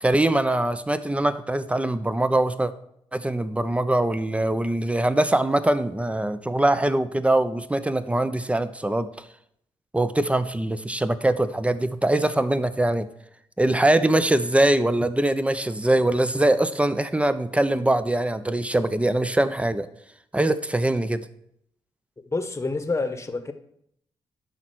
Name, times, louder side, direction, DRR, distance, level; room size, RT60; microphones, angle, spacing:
voice 1, 0.0-2.7 3.1-9.1 9.9-13.1 13.6-19.9 20.3-21.3, right 1 dB, 10° right, 0.8 m, -22 dB
voice 2, 22.3-23.5, left 3 dB, 25° left, 1.2 m, -27 dB
11.0 x 4.4 x 6.2 m
hypercardioid pair, 40°, 12 cm